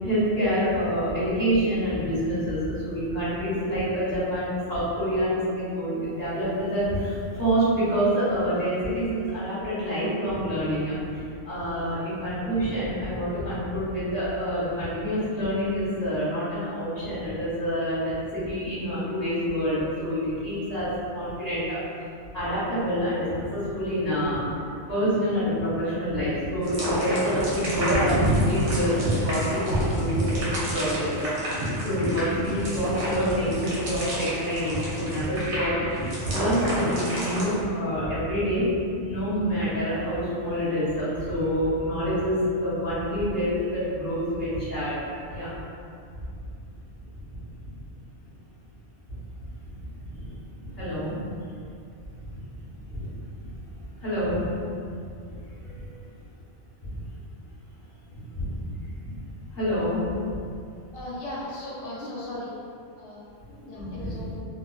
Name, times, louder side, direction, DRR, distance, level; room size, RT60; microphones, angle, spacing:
voice 1, 0.0-21.8 22.3-24.4 24.9-31.6 31.8-35.7 36.3-38.7 39.0-45.0 45.3-45.5 49.9-50.3 50.6-51.1 52.9-53.1 53.4-53.5 54.0-54.5 55.6-55.9 56.9-57.0 58.1-58.7 59.5-60.2 63.5-64.1, equal, 15° left, -14 dB, 1.3 m, -27 dB
sound 1, 26.6-37.5, right 1 dB, 80° right, 1.0 m, -28 dB
voice 2, 60.9-62.5 63.0-63.3 63.7-64.4, left 1 dB, 85° left, -7 dB, 0.9 m, -37 dB
2.4 x 2.3 x 2.3 m, 2.5 s
omnidirectional pair, 1.2 m